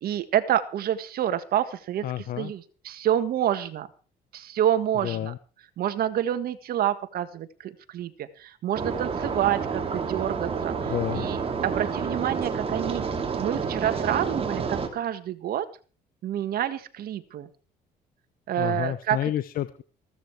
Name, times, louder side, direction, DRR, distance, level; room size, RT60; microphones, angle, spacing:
voice 1, 0.0-2.1 2.4-3.9 4.3-5.3 5.8-10.7 11.1-13.0 13.4-15.6 16.2-17.5 18.5-19.2, right 11 dB, 65° right, 10 dB, 1.6 m, -28 dB
voice 2, 2.0-2.5 5.0-5.4 10.8-11.3 18.6-19.8, left 12 dB, 60° left, 14 dB, 0.8 m, -30 dB
sound 1, 8.7-14.9, right 5 dB, 35° right, 3.0 m, -29 dB
15.5 x 13.5 x 4.7 m, 0.36 s
cardioid pair, 110°, 17 cm